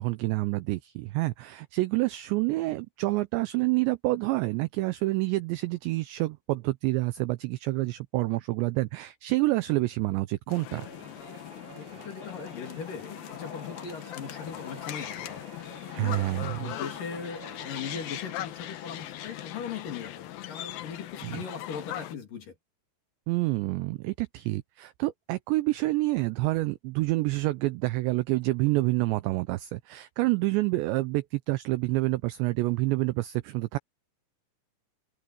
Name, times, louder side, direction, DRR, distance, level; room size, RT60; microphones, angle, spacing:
voice 1, 0.0-10.9 15.9-16.7 21.2-21.4 23.3-33.8, right 20 dB, 85° right, 2.5 m, -28 dB
sound 1, 10.5-22.1, left 13 dB, 85° left, 2.0 m, -40 dB
sound 2, 10.7-19.3, right 9 dB, 70° right, 1.9 m, -51 dB
voice 2, 11.8-15.4 16.0-16.2 16.6-22.6, left 6 dB, 50° left, 3.5 m, -39 dB
omnidirectional pair, 5.8 m